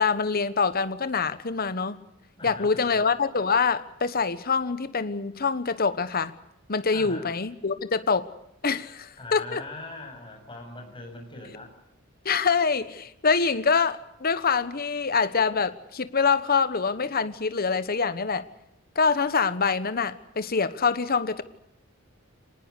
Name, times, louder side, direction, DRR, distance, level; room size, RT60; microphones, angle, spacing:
voice 1, 0.0-2.0 2.4-6.3 6.7-8.3 8.6-9.6 12.2-18.5 18.9-21.4, left 5 dB, 45° left, 13 dB, 1.2 m, -25 dB
voice 2, 2.4-3.0 6.9-7.3 9.2-11.7, left 2 dB, 25° left, 3 dB, 7.5 m, -41 dB
25.0 x 19.5 x 8.3 m, 0.79 s
head